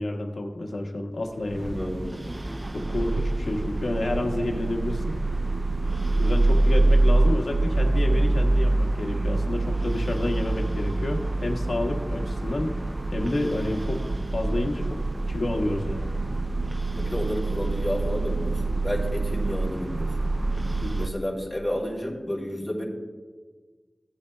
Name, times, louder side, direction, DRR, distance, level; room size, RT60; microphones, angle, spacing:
voice 1, 0.0-1.8 2.7-5.0 6.1-12.7 13.1-14.0 14.3-14.9 15.3-16.1 20.8-21.0, left 1 dB, 75° left, 1 dB, 1.4 m, -29 dB
sound 1, 1.4-21.1, right 2 dB, 30° right, 0.5 m, -25 dB
voice 2, 1.7-2.1 16.9-20.3 21.0-22.8, equal, 15° left, -4 dB, 2.9 m, -31 dB
16.0 x 8.8 x 2.2 m, 1.5 s
cardioid pair, 50°, 0 cm